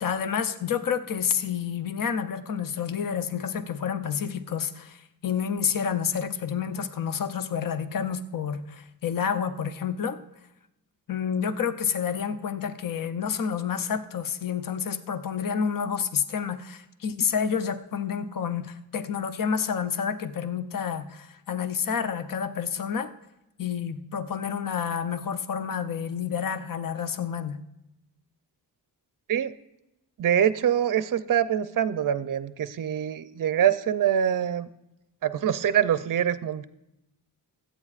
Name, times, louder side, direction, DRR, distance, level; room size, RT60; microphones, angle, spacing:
voice 1, 0.0-10.2 11.1-23.1 23.6-27.6, left 7 dB, 55° left, 10 dB, 0.7 m, -29 dB
voice 2, 30.2-34.7 35.2-36.6, right 9 dB, 55° right, 13 dB, 0.5 m, -24 dB
23.0 x 8.7 x 2.4 m, 0.89 s
wide cardioid pair, 155°, 40 cm